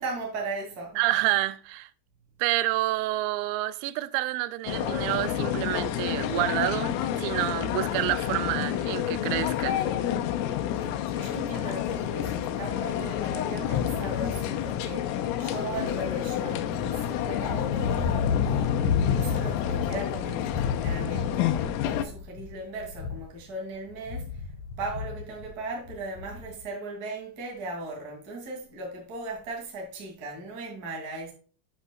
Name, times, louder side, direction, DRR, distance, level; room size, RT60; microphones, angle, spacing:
voice 1, 0.0-1.0 10.8-24.4 24.8-31.3, right 2 dB, 30° right, 1.8 m, -38 dB
voice 2, 1.0-1.9 2.4-9.9, right 16 dB, 90° right, 3.2 m, -28 dB
sound 1, 4.7-22.1, left 11 dB, 90° left, 3.4 m, -29 dB
sound 2, 13.8-14.2 14.6-23.4 23.8-26.6, left 6 dB, 65° left, 2.4 m, -31 dB
8.6 x 8.0 x 2.3 m
omnidirectional pair, 5.8 m